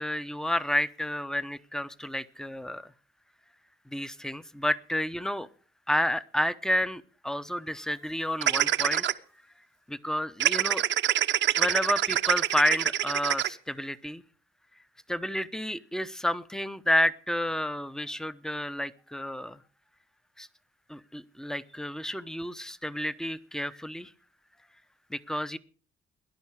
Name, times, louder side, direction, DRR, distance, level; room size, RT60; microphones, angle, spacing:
voice 1, 0.0-2.9 3.9-5.5 5.9-9.0 9.9-10.8 11.6-14.2 15.1-19.6 20.4-20.5 20.9-24.1 25.1-25.6, equal, 5° left, 15 dB, 0.8 m, -30 dB
sound 1, 8.4-9.1 10.4-13.5, right 11 dB, 70° right, 0.9 m, -25 dB
18.0 x 11.0 x 4.8 m, 0.40 s
cardioid pair, 90°, 20 cm